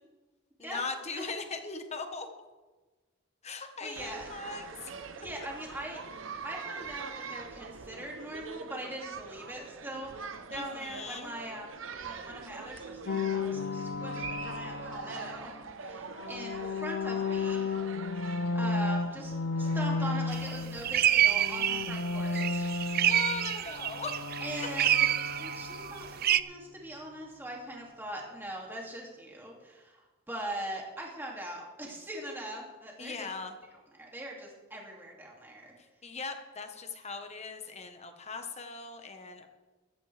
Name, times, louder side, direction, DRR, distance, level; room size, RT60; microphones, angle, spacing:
voice 1, 0.6-2.3 3.4-4.9 10.5-11.3 23.0-24.2 33.0-33.5 36.0-39.5, left 4 dB, 35° left, 6 dB, 1.2 m, -39 dB
voice 2, 3.8-4.3 5.2-10.1 10.5-11.8 12.0-15.5 15.8-17.7 18.2-23.2 24.4-25.1 25.4-33.3 34.0-35.7, right 1 dB, 10° right, -2 dB, 2.5 m, -41 dB
sound 1, 4.0-21.8, right 5 dB, 85° right, 0.9 m, -44 dB
sound 2, 13.1-15.5 16.1-21.0 21.2-26.2, left 3 dB, 85° left, 0.7 m, -33 dB
sound 3, 20.3-20.5 20.8-26.4, right 11 dB, 50° right, 0.4 m, -28 dB
14.5 x 13.5 x 3.4 m, 1.2 s
head